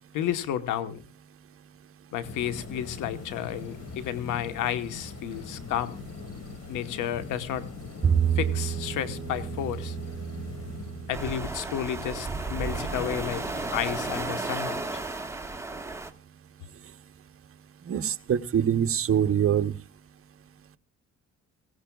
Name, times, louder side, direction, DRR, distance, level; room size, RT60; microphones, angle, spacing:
voice 1, 0.1-1.0 2.1-6.0 6.7-7.6 8.4-10.0 11.1-13.4 13.7-15.0, left 10 dB, 90° left, 11 dB, 1.3 m, -32 dB
sound 1, 2.2-11.4 11.9-14.2, left 4 dB, 60° left, 4.9 m, -42 dB
Bowed string instrument, 8.0-14.4, right 8 dB, 30° right, 2.0 m, -32 dB
sound 2, 11.1-16.1, right 3 dB, 10° right, 1.5 m, -33 dB
voice 2, 17.9-19.7, right 9 dB, 45° right, 9 dB, 0.9 m, -24 dB
23.5 x 16.0 x 2.3 m, 0.31 s
cardioid pair, 90°, 30 cm